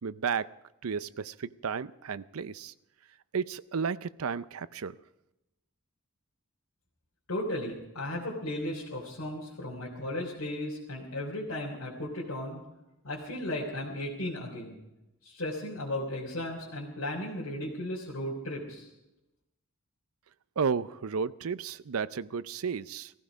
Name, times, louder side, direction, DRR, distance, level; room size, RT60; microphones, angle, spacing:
voice 1, 0.0-0.5 0.8-2.7 3.3-5.0 20.6-23.1, right 6 dB, 75° right, 16 dB, 0.5 m, -33 dB
voice 2, 7.3-12.6 13.0-14.8 15.2-18.9, left 1 dB, 75° left, -4 dB, 3.4 m, -35 dB
17.5 x 15.0 x 5.1 m, 0.94 s
head